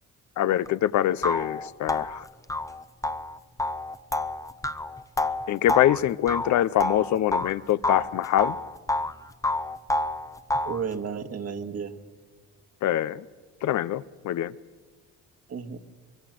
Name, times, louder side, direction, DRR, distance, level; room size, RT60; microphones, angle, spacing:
voice 1, 0.4-2.2 5.5-8.6 12.8-13.3 13.6-14.5, left 12 dB, 70° left, 16 dB, 0.7 m, -24 dB
sound 1, 0.7-0.8 1.2-7.5 7.8-9.1 9.4-10.8, left 2 dB, 10° left, 0.8 m, -28 dB
voice 2, 10.6-12.0 15.5-15.8, right 6 dB, 55° right, 8 dB, 1.9 m, -32 dB
24.5 x 22.5 x 7.7 m, 1.4 s
cardioid pair, 90°, 30 cm